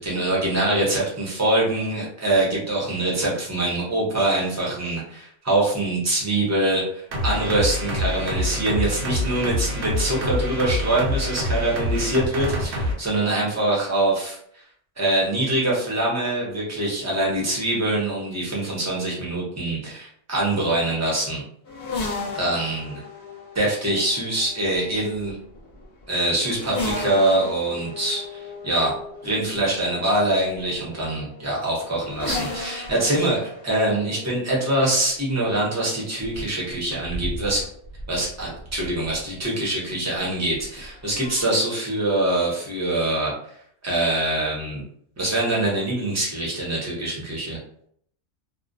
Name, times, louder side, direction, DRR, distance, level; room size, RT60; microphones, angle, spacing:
voice 1, 0.0-14.4 15.0-21.4 22.3-23.0 23.5-25.4 26.1-28.9 29.2-37.7 38.1-43.3 43.8-44.8 45.2-47.6, right 1 dB, 15° right, -4 dB, 0.6 m, -24 dB
sound 1, 7.1-12.9, left 1 dB, 75° right, 0.9 m, -26 dB
sound 2, 21.7-39.4 40.5-41.4, left 2 dB, 60° left, 0.8 m, -36 dB
2.4 x 2.1 x 2.5 m, 0.65 s
omnidirectional pair, 1.2 m